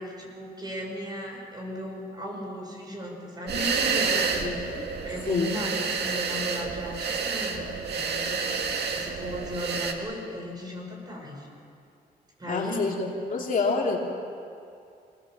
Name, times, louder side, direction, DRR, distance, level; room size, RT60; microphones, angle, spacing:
voice 1, 0.0-4.7 5.0-11.5 12.4-12.9, equal, 25° right, 0 dB, 5.6 m, -36 dB
sound 1, 3.5-9.9, right 5 dB, 75° right, 2.0 m, -29 dB
voice 2, 4.2-4.8 5.3-5.5 12.5-14.0, left 4 dB, 50° left, 0 dB, 2.8 m, -28 dB
25.0 x 19.5 x 7.5 m, 2.5 s
wide cardioid pair, 125°, 17 cm